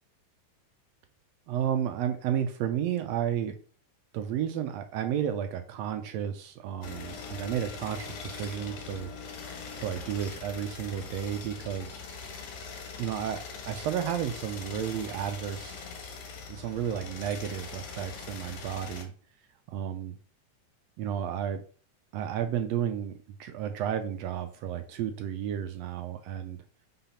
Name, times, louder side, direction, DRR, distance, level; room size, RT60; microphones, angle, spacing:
voice 1, 1.5-3.6 4.1-9.1 9.8-12.0 13.0-15.8 16.5-19.1 19.7-20.2 21.0-21.6 22.1-26.6, right 9 dB, 75° right, 7 dB, 1.6 m, -32 dB
sound 1, 6.8-19.0, left 5 dB, 90° left, 3.0 m, -42 dB
5.8 x 4.0 x 5.6 m, 0.42 s
omnidirectional pair, 3.4 m